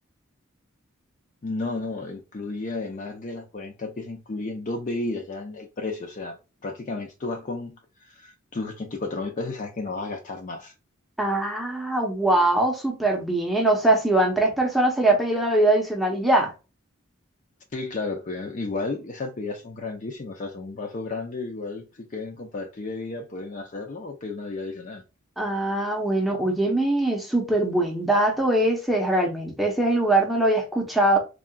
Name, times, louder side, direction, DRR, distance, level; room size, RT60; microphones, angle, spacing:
voice 1, 1.4-10.7 17.7-25.0, left 3 dB, 40° left, 0.5 m, -33 dB
voice 2, 11.2-16.5 25.4-31.2, right 1 dB, ahead, 0.7 m, -22 dB
3.6 x 2.3 x 2.2 m
head